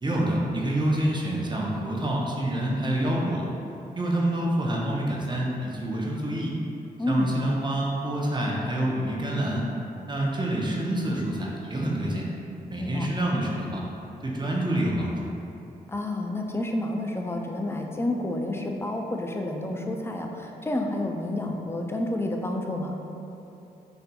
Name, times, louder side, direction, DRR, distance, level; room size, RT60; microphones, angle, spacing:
voice 1, 0.0-3.5 4.0-6.5 7.1-9.7 10.1-12.2 12.7-13.8 14.2-15.3, right 1 dB, 25° right, -3 dB, 0.7 m, -27 dB
voice 2, 7.0-7.3 12.8-13.1 15.9-22.9, left 1 dB, 15° left, 2 dB, 0.4 m, -29 dB
4.1 x 2.6 x 2.2 m, 2.8 s
supercardioid pair, 45°, 17 cm